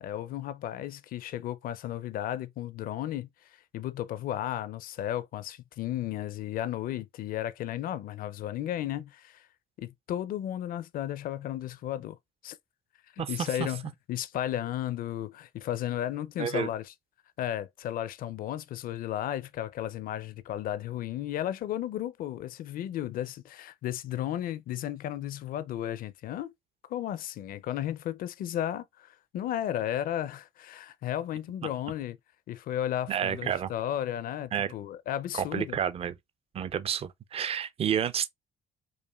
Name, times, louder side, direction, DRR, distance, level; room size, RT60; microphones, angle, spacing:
voice 1, 0.0-3.3 3.7-9.4 9.8-12.2 12.4-12.6 13.2-16.9 17.4-26.5 26.9-32.2 32.5-35.8, left 12 dB, 55° left, 0.4 m, -34 dB
voice 2, 16.4-16.7 33.1-33.7 34.5-34.7 35.3-36.2 36.5-38.3, right 8 dB, 35° right, 0.4 m, -30 dB
4.8 x 2.5 x 2.3 m
cardioid pair, 110°, 17 cm